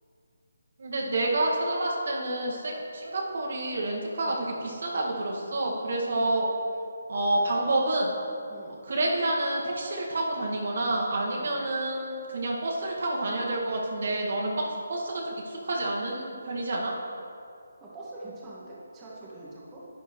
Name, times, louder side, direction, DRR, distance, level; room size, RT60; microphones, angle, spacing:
voice 1, 0.8-6.5 7.1-8.1 8.8-16.9, right 1 dB, 65° right, -2 dB, 1.8 m, -28 dB
voice 2, 11.3-11.6 17.8-19.8, right 2 dB, 15° right, -7 dB, 1.7 m, -44 dB
11.0 x 9.2 x 3.1 m, 2.5 s
figure-of-eight pair, 155°, 0 cm